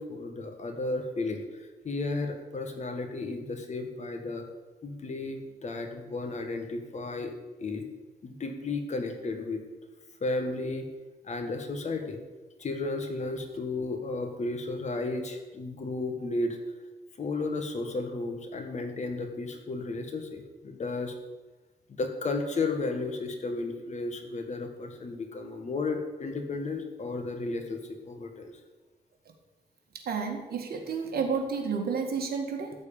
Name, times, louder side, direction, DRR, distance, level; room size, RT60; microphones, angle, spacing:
voice 1, 0.0-4.4 4.8-7.3 7.6-7.8 8.2-9.6 10.2-10.9 11.2-12.2 12.6-16.6 17.2-21.1 22.0-28.5, left 3 dB, 45° left, 5 dB, 1.7 m, -33 dB
voice 2, 30.1-32.7, right 5 dB, 65° right, 3 dB, 2.0 m, -31 dB
14.0 x 4.8 x 8.8 m, 1.2 s
wide cardioid pair, 140°, 17 cm